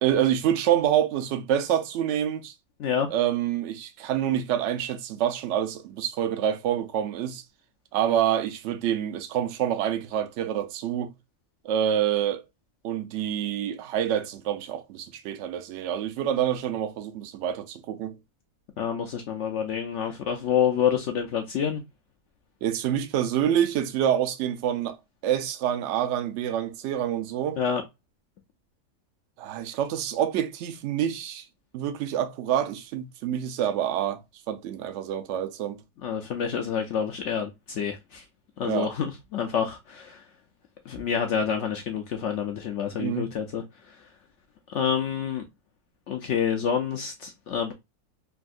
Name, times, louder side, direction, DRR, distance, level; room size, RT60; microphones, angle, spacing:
voice 1, 0.0-2.5 3.1-7.4 7.9-11.1 11.6-12.4 12.8-18.2 22.6-25.0 25.2-27.6 29.4-31.4 31.7-34.2 34.5-35.8 38.6-38.9 42.9-43.3, right 10 dB, 65° right, 0.7 m, -27 dB
voice 2, 18.8-21.8 27.6-27.8 36.0-38.2 38.6-40.2 40.9-43.6 43.9-44.0 44.7-45.4 46.1-47.7, left 8 dB, 65° left, 0.7 m, -28 dB
3.4 x 2.3 x 2.4 m
omnidirectional pair, 1.5 m